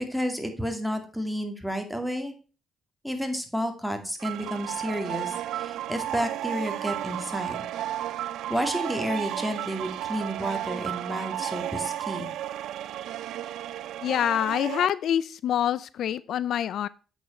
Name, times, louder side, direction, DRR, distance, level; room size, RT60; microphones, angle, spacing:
voice 1, 0.0-2.3 3.0-7.6 8.2-12.3, equal, ahead, 6 dB, 2.2 m, -31 dB
sound 1, 4.2-14.9, right 12 dB, 80° right, 0.4 m, -33 dB
voice 2, 14.0-16.9, left 10 dB, 70° left, 18 dB, 0.4 m, -26 dB
8.2 x 7.1 x 4.3 m, 0.35 s
cardioid pair, 90°, 0 cm